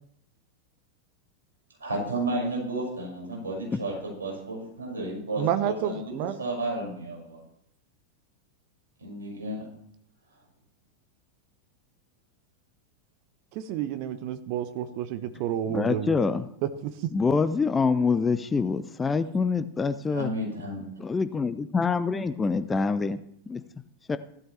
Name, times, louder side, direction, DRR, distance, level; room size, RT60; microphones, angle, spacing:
voice 1, 1.8-6.1 6.4-7.4 9.0-9.6 20.1-20.8, right 1 dB, 70° right, -2 dB, 5.9 m, -32 dB
voice 2, 5.4-6.4 13.5-16.2, right 10 dB, 45° right, 11 dB, 0.8 m, -30 dB
voice 3, 15.7-16.5 17.1-20.3 21.0-23.2 23.5-23.6 24.1-24.2, left 4 dB, 15° left, 13 dB, 0.6 m, -25 dB
15.5 x 12.5 x 3.3 m, 0.71 s
figure-of-eight pair, 90°, 0 cm